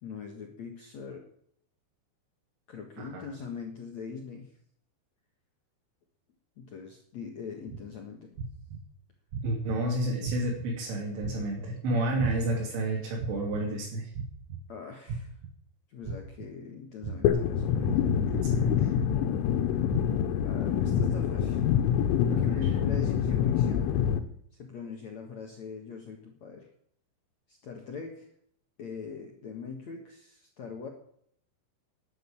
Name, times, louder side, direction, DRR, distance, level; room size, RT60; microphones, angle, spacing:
voice 1, 0.0-1.3 2.7-4.5 6.6-8.4 14.7-15.3 15.9-18.2 20.4-21.6 22.3-24.0 24.6-26.7 27.5-28.3 28.8-30.9, left 5 dB, 60° left, 2 dB, 1.9 m, -41 dB
sound 1, 7.7-7.8 8.4-8.8 9.3-9.8 10.2-10.7 11.2-11.6 12.2-12.6 13.2-13.6 14.1-14.6 15.1-15.5 16.0-16.5 17.0-17.4 18.0-18.4 19.0-19.4 19.9-20.3, right 6 dB, 60° right, 2.2 m, -36 dB
voice 2, 9.4-14.1 17.8-18.9 22.3-22.5, right 1 dB, 75° right, -3 dB, 5.3 m, -31 dB
sound 2, 17.3-24.2, left 9 dB, 85° left, 3.6 m, -26 dB
12.0 x 10.5 x 8.7 m, 0.67 s
omnidirectional pair, 5.6 m